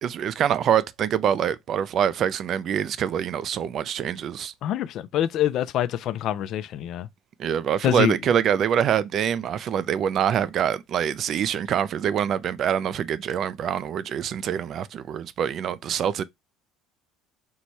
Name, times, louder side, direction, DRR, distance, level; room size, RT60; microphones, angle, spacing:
voice 1, 0.0-4.5 7.4-16.2, right 9 dB, 45° right, 0.4 m, -25 dB
voice 2, 4.6-7.1 7.8-8.2, left 11 dB, 55° left, 0.4 m, -25 dB
4.6 x 2.2 x 4.1 m
cardioid pair, 125°, 0 cm